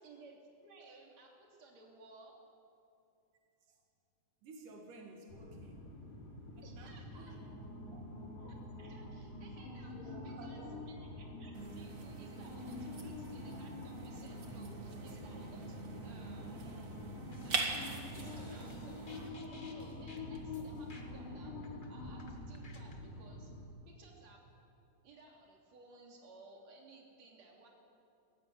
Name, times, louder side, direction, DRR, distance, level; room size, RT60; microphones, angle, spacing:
voice 1, 0.0-2.4 6.6-7.4 8.4-16.9 17.4-23.5 23.9-24.5 25.0-27.7, right 3 dB, 60° right, 0 dB, 4.2 m, -58 dB
voice 2, 4.4-5.9 6.6-7.4 7.9-8.4 9.9-10.8, right 2 dB, 85° right, 1 dB, 3.5 m, -54 dB
sound 1, 5.3-23.6, left 2 dB, 70° left, 4.6 m, -46 dB
sound 2, 11.5-19.3, right 4 dB, 35° right, 1.7 m, -43 dB
sound 3, 17.3-23.0, left 1 dB, 25° left, 1.0 m, -57 dB
23.0 x 14.5 x 9.3 m, 2.7 s
omnidirectional pair, 3.6 m